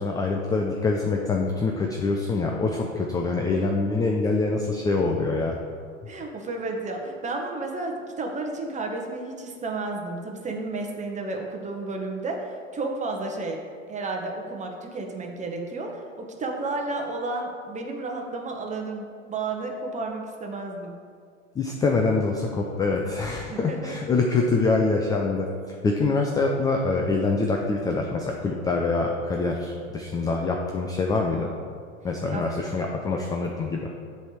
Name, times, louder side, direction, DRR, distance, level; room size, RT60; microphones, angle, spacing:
voice 1, 0.0-5.6 21.6-31.5 32.0-33.9, left 3 dB, 10° left, 1 dB, 0.4 m, -25 dB
voice 2, 6.1-13.6 13.9-20.9 23.4-24.0 32.3-32.5, right 3 dB, 20° right, 2 dB, 1.0 m, -32 dB
7.7 x 3.4 x 6.2 m, 2.1 s
hypercardioid pair, 90°, 38 cm